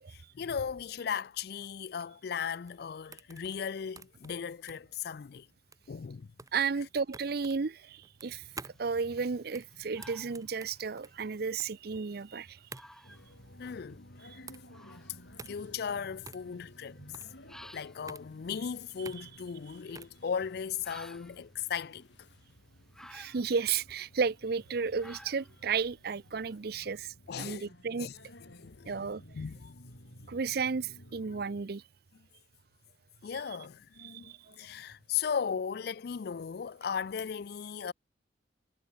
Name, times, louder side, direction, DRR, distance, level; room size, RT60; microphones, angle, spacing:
voice 1, 0.1-5.5 5.9-6.3 13.6-14.0 14.3-14.5 15.5-17.0 17.6-22.3 27.3-27.7 28.0-28.1 28.6-29.0 29.3-29.7 33.2-37.9, left 7 dB, 55° left, 0.4 m, -37 dB
sound 1, 2.4-20.2, right 4 dB, 20° right, 1.0 m, -51 dB
voice 2, 6.5-8.4 8.8-12.6 23.1-28.1 28.9-29.2 30.3-31.8 34.0-34.5, right 5 dB, 55° right, 0.6 m, -33 dB
sound 2, 8.2-26.9, left 1 dB, 5° left, 5.2 m, -58 dB
sound 3, 13.0-31.6, left 1 dB, 80° left, 7.2 m, -55 dB
head